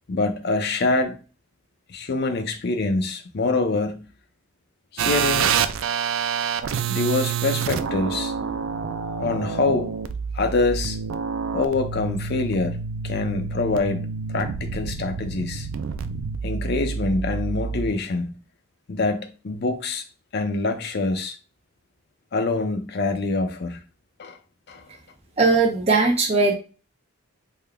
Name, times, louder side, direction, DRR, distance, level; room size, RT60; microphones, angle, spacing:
voice 1, 0.1-1.2 1.9-4.1 4.9-5.5 6.9-8.3 9.2-9.9 10.3-11.0 11.5-15.7 16.4-18.4 18.9-20.0 20.3-21.4 22.3-23.8 24.2-24.4 24.7-24.8, left 3 dB, 50° left, 0.5 m, -25 dB
sound 1, 5.0-17.9, right 6 dB, 75° right, 0.3 m, -28 dB
voice 2, 25.4-26.5, right 3 dB, 30° right, 0.6 m, -19 dB
3.6 x 2.2 x 3.3 m
head